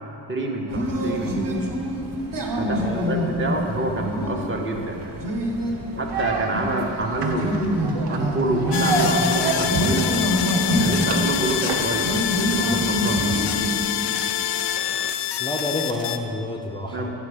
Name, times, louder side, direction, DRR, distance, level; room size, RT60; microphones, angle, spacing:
voice 1, 0.3-1.6 2.6-5.1 6.0-7.8 8.1-10.1 10.8-12.1 12.5-13.2 16.9-17.1, right 2 dB, 25° right, 1 dB, 0.8 m, -27 dB
sound 1, 0.7-13.8, equal, 50° right, 1.2 m, -26 dB
voice 2, 2.8-3.1 15.4-17.1, left 2 dB, 10° left, -2 dB, 0.4 m, -29 dB
sound 2, 6.1-12.0, right 2 dB, 65° right, 0.9 m, -30 dB
sound 3, 8.7-16.2, left 10 dB, 65° left, 0.5 m, -26 dB
8.7 x 3.8 x 6.5 m, 2.8 s
cardioid pair, 110°, 44 cm